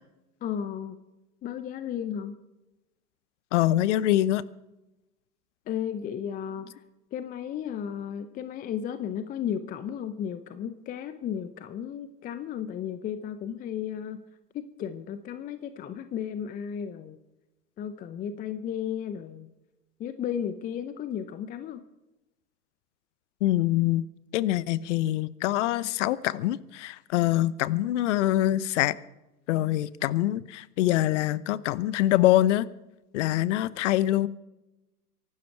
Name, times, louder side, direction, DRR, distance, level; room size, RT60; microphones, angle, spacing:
voice 1, 0.4-1.0 1.4-2.3 5.7-6.8 7.1-14.2 14.5-17.2 17.8-19.5 20.0-21.8, left 9 dB, 15° left, 11 dB, 0.7 m, -34 dB
voice 2, 3.5-4.5 23.4-24.0 24.3-28.9 29.5-32.7 33.1-34.3, left 14 dB, 45° left, 20 dB, 0.9 m, -24 dB
24.0 x 12.0 x 4.6 m, 0.99 s
figure-of-eight pair, 105°, 48 cm